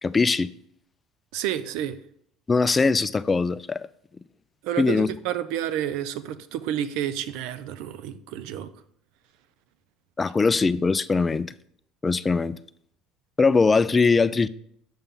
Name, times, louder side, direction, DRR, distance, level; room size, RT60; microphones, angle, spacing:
voice 1, 0.0-0.5 2.5-3.9 4.8-5.1 10.2-11.5 12.0-12.5 13.4-14.5, left 4 dB, 25° left, 0.3 m, -21 dB
voice 2, 1.3-2.0 4.6-8.7, right 11 dB, 75° right, 0.5 m, -30 dB
7.0 x 5.5 x 3.7 m
supercardioid pair, 85°, 0 cm